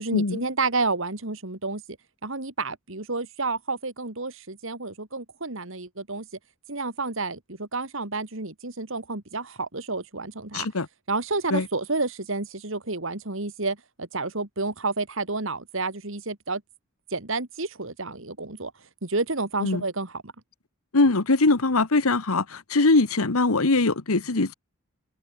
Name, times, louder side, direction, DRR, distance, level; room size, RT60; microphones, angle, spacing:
voice 1, 0.0-1.8 2.2-6.3 6.7-10.7 11.1-16.6 17.1-18.7 19.0-20.3, right 3 dB, 60° right, 2.3 m, -30 dB
voice 2, 10.5-10.9 11.5-11.7 19.6-19.8 20.9-24.5, left 3 dB, 80° left, 1.4 m, -22 dB
open air
head